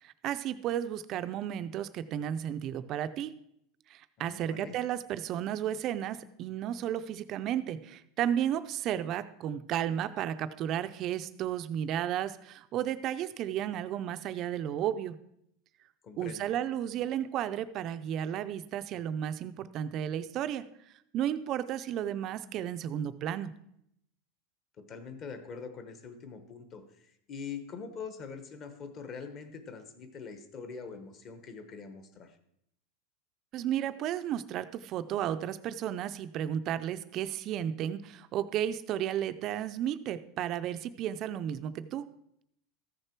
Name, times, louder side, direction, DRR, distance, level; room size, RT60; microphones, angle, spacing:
voice 1, 0.0-3.3 3.9-15.2 16.2-20.6 21.1-23.5 33.5-42.1, right 10 dB, 35° right, 12 dB, 0.4 m, -33 dB
voice 2, 4.2-4.8 16.0-16.5 24.8-32.4, left 5 dB, 30° left, 8 dB, 0.9 m, -44 dB
14.0 x 6.6 x 4.5 m, 0.75 s
supercardioid pair, 165°, 0 cm